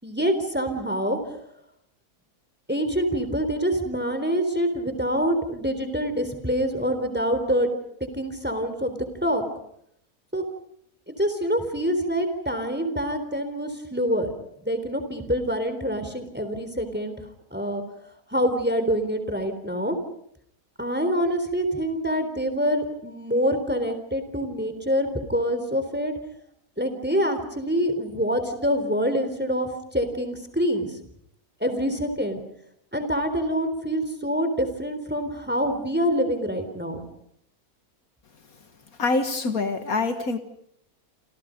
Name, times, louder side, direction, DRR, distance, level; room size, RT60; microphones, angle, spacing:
voice 1, 0.0-1.4 2.7-7.7 8.0-9.4 10.3-10.4 11.1-14.3 14.6-17.2 17.5-17.8 18.3-20.0 20.8-26.1 26.8-30.9 31.6-32.4 32.9-37.0, equal, 5° right, 9 dB, 3.7 m, -26 dB
voice 2, 39.0-40.4, left 3 dB, 65° left, 8 dB, 2.0 m, -25 dB
28.0 x 28.0 x 5.2 m, 0.72 s
omnidirectional pair, 1.6 m